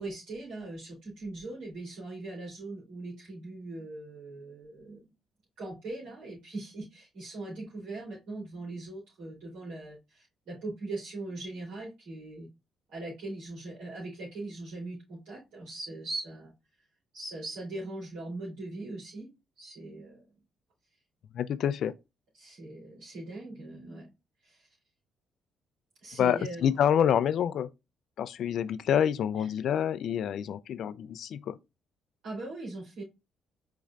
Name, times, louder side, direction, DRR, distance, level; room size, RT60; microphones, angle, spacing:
voice 1, 0.0-5.0 5.6-12.5 12.9-16.5 17.1-19.3 19.6-20.3 22.4-24.1 24.4-24.7 26.0-26.7 29.4-29.5 32.2-33.0, right 2 dB, 75° right, 3.1 m, -40 dB
voice 2, 21.3-21.9 26.2-27.7 28.2-31.6, left 9 dB, 65° left, 0.4 m, -27 dB
5.1 x 4.1 x 2.4 m
hypercardioid pair, 50°, 0 cm